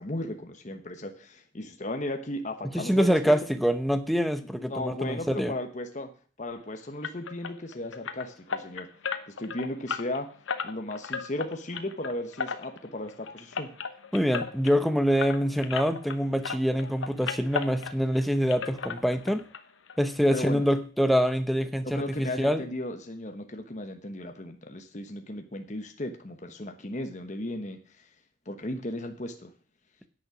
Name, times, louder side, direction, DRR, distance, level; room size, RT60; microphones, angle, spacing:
voice 1, 0.0-3.2 4.6-6.1 6.4-8.9 9.3-10.3 10.6-13.7 20.3-20.6 21.8-28.1 28.5-29.5, left 1 dB, 40° left, 5 dB, 1.1 m, -35 dB
voice 2, 2.7-5.5 14.1-19.4 20.0-22.6, equal, ahead, 9 dB, 0.7 m, -25 dB
sound 1, 7.0-16.2 16.4-18.2 18.5-19.6 19.9-20.0 20.4-20.5 20.9-21.0, left 5 dB, 80° left, 1.0 m, -36 dB
10.0 x 8.4 x 6.1 m, 0.40 s
head